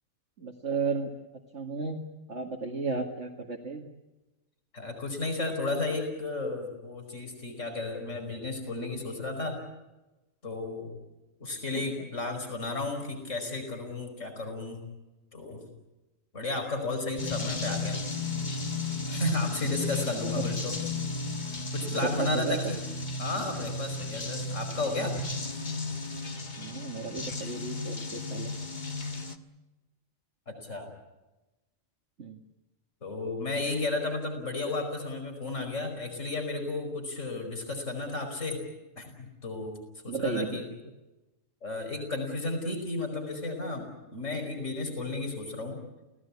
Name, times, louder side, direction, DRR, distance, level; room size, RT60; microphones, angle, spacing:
voice 1, 0.4-1.1 1.5-2.0 2.3-3.8 12.0-12.1 20.2-20.5 21.9-22.6 26.6-28.5 32.2-32.4 40.1-40.6, right 4 dB, 65° right, 1 dB, 2.4 m, -33 dB
voice 2, 4.7-9.6 10.4-10.9 11.4-14.8 15.3-15.6 16.3-18.2 19.1-20.8 21.7-22.8 23.2-25.2 30.5-30.9 33.0-38.6 39.0-39.8 40.0-40.6 41.6-45.8, left 2 dB, 70° left, 4 dB, 5.5 m, -33 dB
sound 1, 17.2-29.4, left 3 dB, 35° left, 1.5 m, -34 dB
29.5 x 17.5 x 8.5 m, 1.1 s
omnidirectional pair, 1.3 m